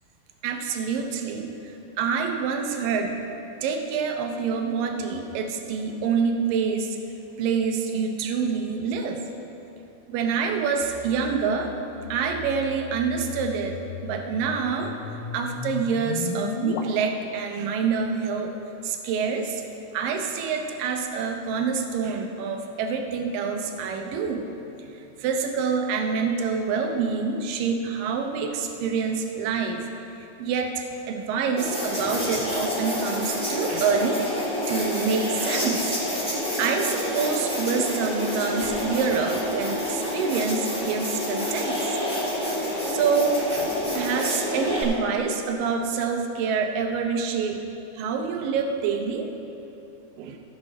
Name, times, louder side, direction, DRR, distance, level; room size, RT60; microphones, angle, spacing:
voice 1, 0.4-3.2 3.6-7.0 7.4-9.2 10.1-11.7 12.1-14.9 15.3-18.5 18.8-19.6 19.9-24.5 24.9-29.8 30.4-34.2 34.7-36.0 36.6-42.0 42.9-47.6 47.9-49.3 50.2-50.4, right 5 dB, 85° right, 4 dB, 2.5 m, -26 dB
sound 1, 10.8-16.8, left 6 dB, 85° left, 2.4 m, -37 dB
sound 2, 31.6-44.8, left 1 dB, ahead, 1.6 m, -28 dB
15.0 x 6.1 x 5.2 m, 2.8 s
omnidirectional pair, 3.9 m